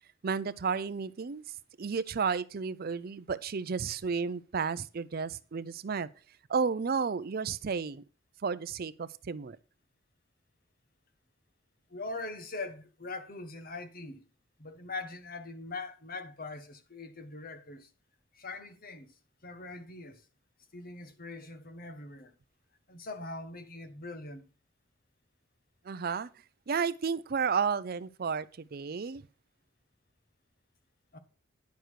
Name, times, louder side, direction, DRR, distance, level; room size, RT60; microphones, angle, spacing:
voice 1, 0.2-1.4 1.8-6.1 6.5-8.0 8.4-9.6 25.8-26.3 26.7-29.2, right 5 dB, 50° right, 0.5 m, -32 dB
voice 2, 11.9-14.2 14.6-17.9 18.3-19.2 19.4-20.2 20.7-22.3 22.9-24.4 31.1-31.2, left 3 dB, 45° left, 1.3 m, -42 dB
10.5 x 6.6 x 4.6 m
head